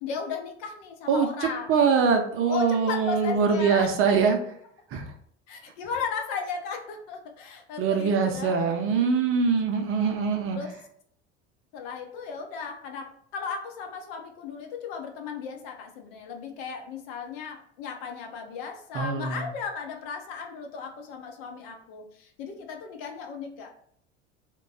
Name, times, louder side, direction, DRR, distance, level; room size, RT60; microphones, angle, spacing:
voice 1, 0.0-1.7 2.5-3.9 5.5-8.6 9.0-9.1 10.5-10.7 11.7-23.8, left 5 dB, 55° left, 3 dB, 0.7 m, -35 dB
voice 2, 1.1-4.4 4.9-5.1 7.8-10.6 18.9-19.5, right 5 dB, 35° right, 4 dB, 0.6 m, -23 dB
3.0 x 2.2 x 3.9 m, 0.65 s
hypercardioid pair, 75°, 37 cm